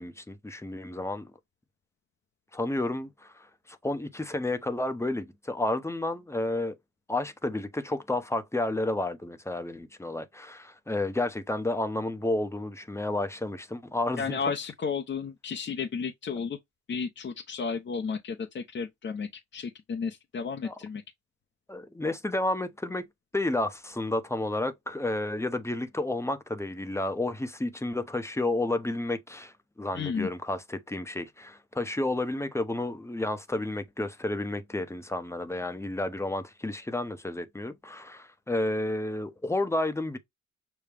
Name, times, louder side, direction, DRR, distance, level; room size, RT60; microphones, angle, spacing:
voice 1, 0.0-1.3 2.5-6.7 7.1-14.4 20.6-20.7 21.7-23.1 23.3-40.2, left 2 dB, 10° left, 0.9 m, -31 dB
voice 2, 14.2-16.6 16.9-21.0 29.9-30.3, left 5 dB, 40° left, 0.8 m, -33 dB
6.7 x 2.3 x 3.4 m
cardioid pair, 90°, 30 cm